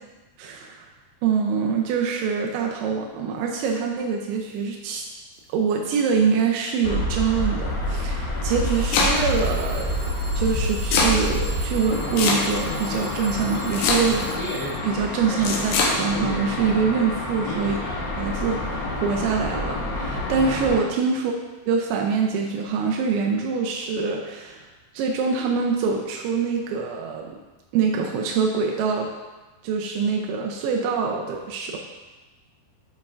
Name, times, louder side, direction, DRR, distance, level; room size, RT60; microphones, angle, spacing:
voice 1, 0.4-0.9 1.2-5.0 5.5-10.1 10.4-14.3 14.8-17.8 18.2-21.3 21.7-24.6 24.9-27.3 27.7-29.1 29.6-31.8, right 5 dB, 85° right, 0 dB, 2.9 m, -24 dB
Alarm / Clock, 3.6-3.8 4.3-4.8 5.3-5.7 6.6-6.7 8.7-15.1, right 1 dB, 70° right, 1.5 m, -42 dB
sound 1, 6.8-20.8, left 1 dB, 55° left, 2.4 m, -28 dB
Domestic sounds home sounds, 8.4-9.4 10.5-11.2 12.2-12.8 13.7-14.4 15.4-16.0, left 3 dB, 85° left, 2.1 m, -22 dB
9.9 x 4.2 x 2.4 m, 1.2 s
omnidirectional pair, 5.2 m